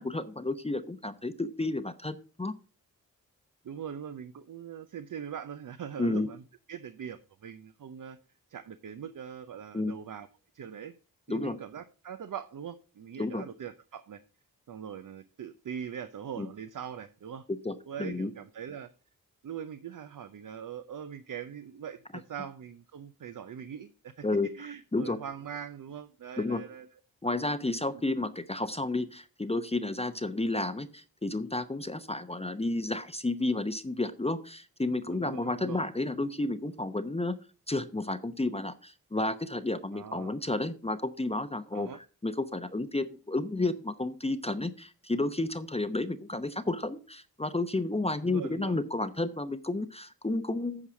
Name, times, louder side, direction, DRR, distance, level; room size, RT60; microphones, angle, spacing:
voice 1, 0.0-2.5 6.0-6.3 9.7-10.0 11.3-11.6 13.2-13.4 16.4-16.5 17.6-18.3 24.2-24.5 24.9-25.2 26.4-26.6 27.2-37.3 37.7-50.9, left 2 dB, 15° left, 9 dB, 0.7 m, -31 dB
voice 2, 3.6-6.4 6.7-8.2 8.5-10.3 10.5-10.9 11.3-14.2 14.7-17.4 17.9-18.9 19.4-24.3 24.5-26.9 35.1-35.9 39.9-40.4 41.7-42.0 48.2-48.8, right 8 dB, 60° right, 11 dB, 0.7 m, -42 dB
8.7 x 4.8 x 6.2 m, 0.37 s
cardioid pair, 50°, 36 cm